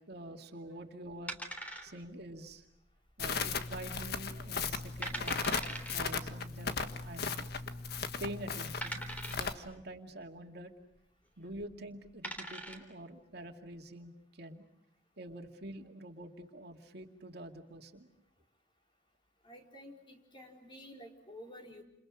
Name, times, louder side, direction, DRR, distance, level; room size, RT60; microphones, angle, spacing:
voice 1, 0.0-1.4 1.8-2.7 3.2-5.5 5.9-7.5 8.2-10.7 11.4-14.7 15.2-18.1, right 1 dB, 65° right, 4 dB, 2.3 m, -46 dB
sound 1, 1.3-2.2 2.5-2.6 3.2-3.6 4.0-4.1 4.7-4.8 5.0-6.0 7.1-7.2 7.8-7.9 8.8-9.6 11.5-11.6 12.0-12.9, right 1 dB, 10° left, 3.6 m, -41 dB
Crackle, 3.2-9.5, left 5 dB, 60° left, 1.5 m, -37 dB
voice 2, 19.4-21.8, equal, 30° left, 1 dB, 4.5 m, -51 dB
29.5 x 28.5 x 6.4 m, 0.76 s
head